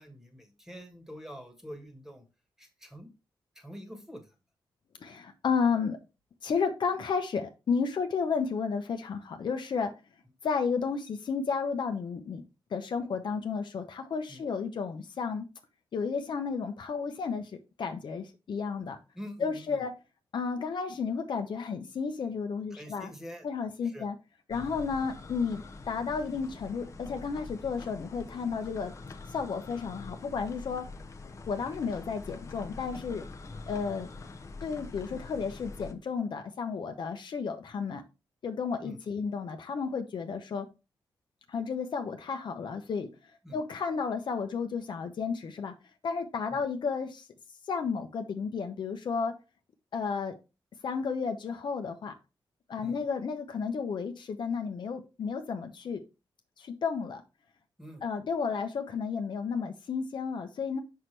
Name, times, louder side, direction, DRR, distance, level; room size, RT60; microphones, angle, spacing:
voice 1, 0.0-2.2 2.6-3.1 3.5-4.3 14.3-14.4 19.1-19.9 22.7-23.5 23.8-24.1 33.7-33.8 38.8-39.0 43.4-43.6 46.5-46.6 52.8-53.0 57.8-58.0, equal, 5° right, 5 dB, 1.4 m, -46 dB
voice 2, 5.0-6.0 6.4-9.9 10.4-12.4 12.7-15.5 15.9-17.5 17.8-19.0 19.4-19.9 20.3-23.1 23.4-24.1 24.5-28.9 29.3-30.8 31.5-33.2 33.7-34.1 34.6-38.0 38.4-40.7 41.5-43.1 43.5-45.7 46.0-47.3 47.7-49.4 49.9-50.3 50.8-52.1 52.7-56.0 56.6-57.2 58.0-60.8, left 5 dB, 65° left, 6 dB, 0.9 m, -32 dB
sound 1, 24.5-35.9, left 3 dB, 35° left, 0.7 m, -45 dB
6.0 x 5.8 x 3.2 m, 0.28 s
wide cardioid pair, 140°, 9 cm